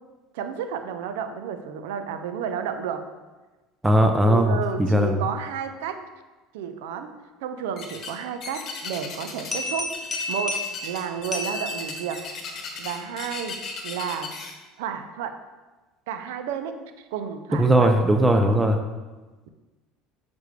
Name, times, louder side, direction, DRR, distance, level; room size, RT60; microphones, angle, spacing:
voice 1, 0.3-3.1 4.2-6.0 6.5-7.1 7.4-10.0 10.3-12.2 12.8-14.3 14.8-15.3 16.1-17.9 18.5-18.6, right 8 dB, 80° right, 9 dB, 0.5 m, -31 dB
voice 2, 3.8-4.6 4.9-5.2 17.6-18.8, right 1 dB, 10° right, 5 dB, 0.6 m, -18 dB
sound 1, 7.8-8.1 8.4-9.6 9.9-14.5, left 5 dB, 45° left, 1.1 m, -36 dB
sound 2, 9.5-12.5, left 2 dB, 25° left, 1.3 m, -32 dB
6.4 x 5.2 x 3.2 m, 1.2 s
supercardioid pair, 95°, 0 cm